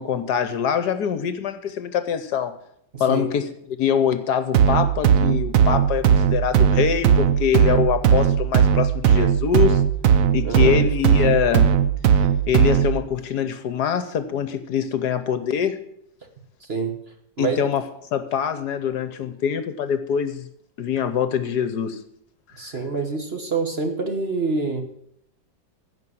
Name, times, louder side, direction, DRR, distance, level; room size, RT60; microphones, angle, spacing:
voice 1, 0.0-2.5 3.0-9.8 10.3-11.7 12.5-15.8 17.4-17.8 18.1-20.5 20.8-22.0, left 8 dB, 65° left, 11 dB, 1.3 m, -24 dB
voice 2, 2.9-3.3 10.4-10.8 16.7-16.9 17.4-17.7 22.6-24.8, right 4 dB, 35° right, 4 dB, 1.4 m, -26 dB
sound 1, 4.5-13.0, right 8 dB, 60° right, 1.0 m, -18 dB
15.5 x 5.5 x 7.7 m, 0.71 s
omnidirectional pair, 2.0 m